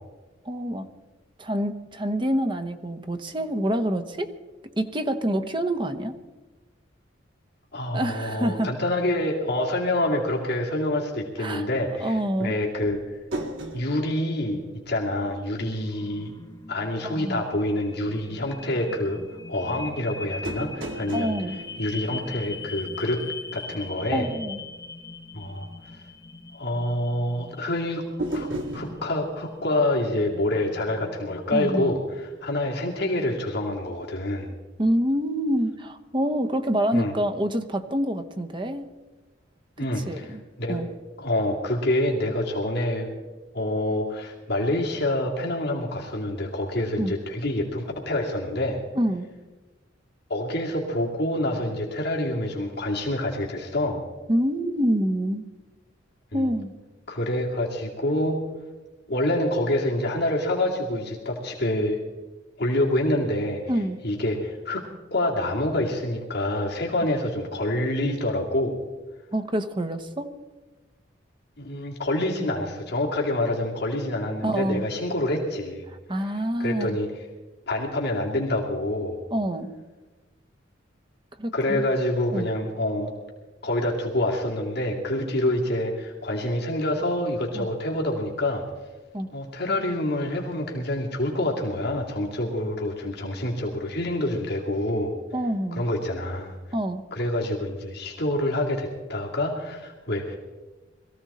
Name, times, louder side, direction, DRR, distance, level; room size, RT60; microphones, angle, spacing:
voice 1, 0.4-0.9 1.4-4.3 4.8-6.1 7.9-8.7 11.4-11.7 12.0-12.5 17.0-17.4 21.1-21.6 24.1-24.6 31.5-31.9 34.8-38.8 40.0-40.4 40.7-40.9 47.0-47.1 48.9-49.3 54.3-55.4 56.3-56.7 63.7-64.0 69.3-70.3 74.4-74.8 76.1-77.0 79.3-79.7 81.4-81.9 82.3-82.5 87.5-87.7 89.1-89.3 95.3-95.8 96.7-97.0, equal, 25° right, 8 dB, 1.0 m, -26 dB
voice 2, 7.7-13.2 13.7-14.6 14.9-16.3 16.7-19.2 19.5-21.3 21.8-23.2 23.5-24.3 25.3-26.0 26.5-28.0 28.3-28.5 28.7-34.5 36.9-37.1 39.8-40.8 41.2-43.1 43.5-48.8 50.3-54.0 56.3-56.5 57.1-58.4 59.1-62.0 62.6-63.6 64.0-64.8 65.1-68.8 71.6-75.9 76.6-77.2 77.7-79.2 81.5-83.1 83.6-88.6 89.3-95.1 95.7-96.5 97.1-100.4, left 1 dB, 60° left, -1 dB, 2.4 m, -27 dB
sound 1, 12.8-15.5 15.7-15.8 20.4-22.9 28.2-29.1, right 1 dB, 80° right, 2.6 m, -35 dB
sound 2, 15.5-33.2, left 3 dB, 20° left, 1.1 m, -42 dB
21.5 x 15.0 x 4.2 m, 1.2 s
head